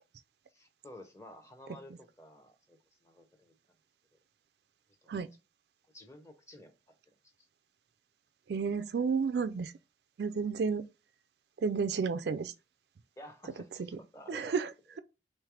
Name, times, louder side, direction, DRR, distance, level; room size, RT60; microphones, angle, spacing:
voice 1, 0.5-3.5 5.0-5.1 5.9-6.7 7.4-7.5 13.2-14.6, left 1 dB, 15° left, 0.8 m, -52 dB
voice 2, 8.5-9.7 10.2-10.8 11.6-12.5 14.3-14.7, right 5 dB, 55° right, 0.3 m, -31 dB
3.2 x 3.2 x 4.7 m
head